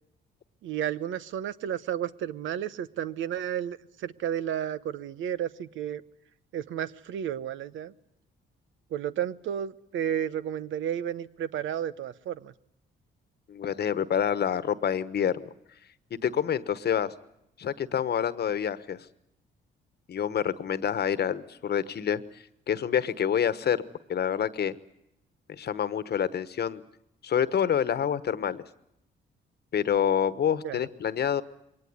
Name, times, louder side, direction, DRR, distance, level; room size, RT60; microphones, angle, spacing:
voice 1, 0.6-6.0 6.5-7.9 8.9-12.5 30.6-30.8, right 10 dB, 75° right, 15 dB, 1.0 m, -32 dB
voice 2, 13.5-15.5 16.1-17.1 17.6-19.1 20.1-22.2 22.7-23.8 24.1-24.7 25.5-26.8 27.2-28.6 29.7-31.4, left 8 dB, 55° left, 15 dB, 1.3 m, -27 dB
22.5 x 18.5 x 9.7 m, 0.82 s
cardioid pair, 90°, 20 cm